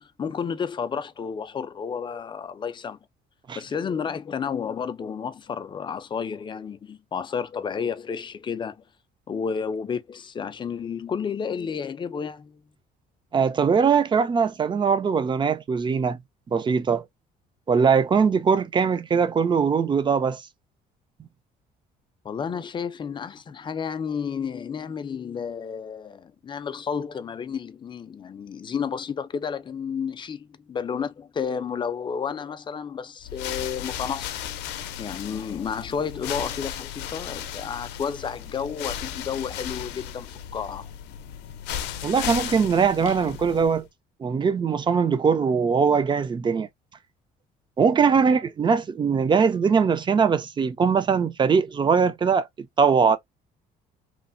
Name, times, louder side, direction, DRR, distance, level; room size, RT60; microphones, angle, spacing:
voice 1, 0.0-3.0 3.6-8.8 9.3-12.6 22.2-34.3 35.0-40.9, left 6 dB, 30° left, 0.4 m, -31 dB
voice 2, 13.3-16.2 16.5-17.0 17.7-20.4 42.0-43.9 44.2-46.7 47.8-52.5 52.8-53.2, right 6 dB, 25° right, 0.5 m, -21 dB
sound 1, 33.2-43.9, left 10 dB, 90° left, 0.5 m, -35 dB
3.1 x 2.0 x 2.5 m
cardioid pair, 110°, 17 cm